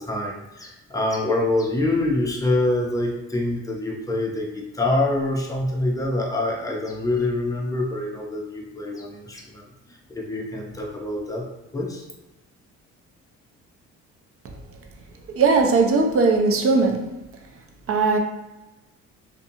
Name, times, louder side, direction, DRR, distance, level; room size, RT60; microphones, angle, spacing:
voice 1, 0.0-9.6 9.9-11.5 11.7-12.1, left 2 dB, 10° left, -1 dB, 0.6 m, -25 dB
voice 2, 15.3-17.1 17.9-18.2, right 4 dB, 45° right, 3 dB, 0.5 m, -18 dB
2.6 x 2.2 x 2.7 m, 1.0 s
supercardioid pair, 75°, 32 cm